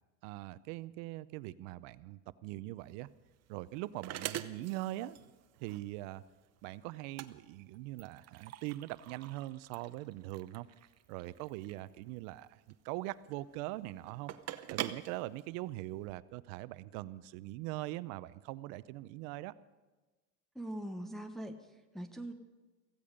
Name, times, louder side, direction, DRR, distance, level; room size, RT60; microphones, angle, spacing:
voice 1, 0.2-3.1 3.5-5.2 5.6-6.2 6.6-10.7 11.1-12.5 12.8-14.3 14.7-19.5, right 17 dB, 70° right, 17 dB, 0.7 m, -42 dB
sound 1, 2.8-16.1, right 12 dB, 40° right, 0.9 m, -46 dB
voice 2, 20.5-22.3, right 1 dB, ahead, 3 dB, 1.1 m, -42 dB
16.0 x 15.5 x 5.2 m, 1.2 s
supercardioid pair, 100°, 41 cm